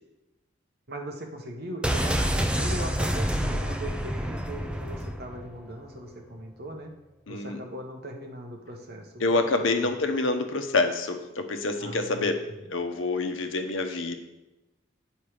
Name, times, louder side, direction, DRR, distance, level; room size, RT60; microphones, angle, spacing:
voice 1, 0.9-6.9 7.3-9.4 9.8-9.9 11.8-12.7, right 1 dB, 55° right, 2 dB, 1.3 m, -39 dB
sound 1, 1.8-5.6 5.9-6.0, equal, 5° right, 0.5 m, -28 dB
voice 2, 7.3-7.6 9.2-12.4 12.7-14.1, left 3 dB, 90° left, 6 dB, 1.0 m, -27 dB
9.2 x 5.4 x 5.0 m, 1.0 s
head